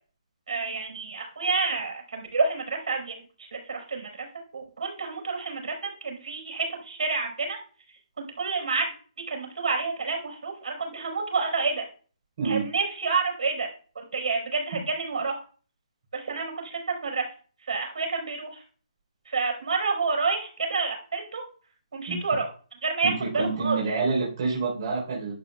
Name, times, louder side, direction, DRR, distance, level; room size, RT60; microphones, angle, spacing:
voice 1, 0.5-4.3 4.5-7.6 8.2-8.9 9.3-11.8 12.4-13.7 13.9-15.4 16.1-17.3 17.7-18.6 19.3-21.4 21.9-22.5 22.8-23.8, right 4 dB, 80° right, 1 dB, 4.6 m, -29 dB
voice 2, 23.0-25.3, right 4 dB, 35° right, -4 dB, 3.6 m, -27 dB
11.0 x 8.6 x 2.3 m, 0.41 s
hypercardioid pair, 180°, 4 cm